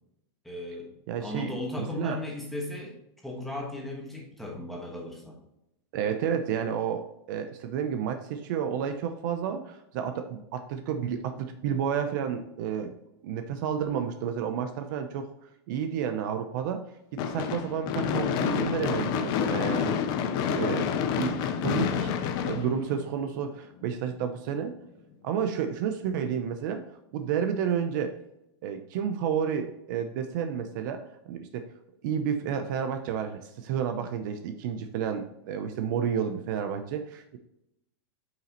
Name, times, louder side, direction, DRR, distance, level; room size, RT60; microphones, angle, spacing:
voice 1, 0.4-0.9 1.2-3.0 3.2-5.4, left 2 dB, ahead, -1 dB, 1.3 m, -36 dB
voice 2, 1.1-2.2 5.9-12.9 13.2-15.3 15.7-16.8 17.2-20.0 20.5-20.9 21.2-22.2 22.4-24.7 25.2-26.8 27.1-28.1 28.6-31.6 32.0-37.4, right 8 dB, 45° right, 7 dB, 0.6 m, -31 dB
Gunshot gunfire / Fireworks, 17.2-23.4, left 8 dB, 30° left, 0.5 m, -28 dB
9.1 x 5.7 x 3.0 m, 0.85 s
supercardioid pair, 165°, 14 cm